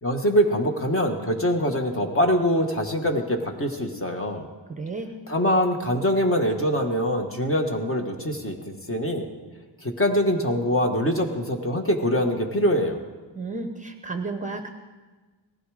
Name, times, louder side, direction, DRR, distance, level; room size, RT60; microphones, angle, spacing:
voice 1, 0.0-4.5 5.3-9.3 9.8-13.0, equal, 30° left, 4 dB, 1.5 m, -24 dB
voice 2, 4.8-5.1 13.3-14.7, right 3 dB, 15° right, 6 dB, 0.8 m, -32 dB
18.0 x 15.5 x 4.9 m, 1.3 s
wide cardioid pair, 165°, 43 cm